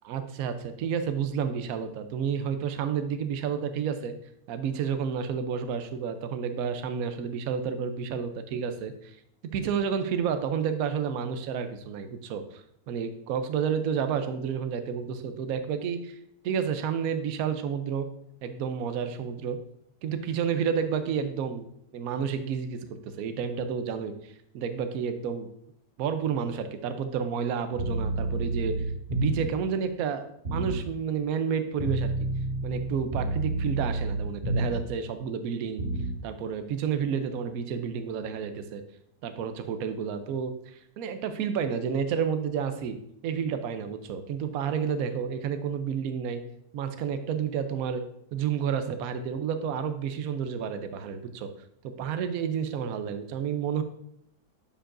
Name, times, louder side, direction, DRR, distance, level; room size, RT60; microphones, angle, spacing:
voice 1, 0.0-4.2 4.5-9.2 9.5-16.2 16.4-18.1 18.4-19.6 20.0-21.7 21.9-25.5 26.0-28.8 29.1-32.1 32.6-35.9 36.2-38.8 39.2-43.0 43.2-46.4 46.7-48.0 48.3-51.5 52.0-53.8, right 7 dB, 65° right, 9 dB, 1.0 m, -30 dB
sound 1, 27.8-29.6 30.5-30.9 31.8-35.0 35.8-36.2, right 2 dB, 40° right, 1.6 m, -29 dB
10.0 x 4.9 x 2.5 m, 0.74 s
omnidirectional pair, 1.9 m